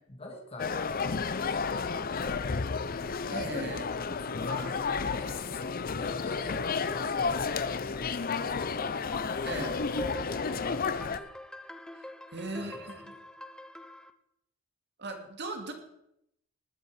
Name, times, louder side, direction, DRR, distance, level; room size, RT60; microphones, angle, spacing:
voice 1, 0.1-3.0 3.7-4.8 5.1-9.2 10.4-11.3 12.5-13.1, left 1 dB, 30° left, 2 dB, 1.9 m, -46 dB
sound 1, 0.6-11.2, left 5 dB, 45° left, 0.6 m, -32 dB
voice 2, 3.3-3.9 9.4-9.8 12.3-12.9 15.0-15.7, right 2 dB, 55° right, 4 dB, 2.3 m, -37 dB
sound 2, 8.6-14.1, left 1 dB, 5° left, 0.7 m, -44 dB
19.5 x 8.4 x 4.9 m, 0.79 s
head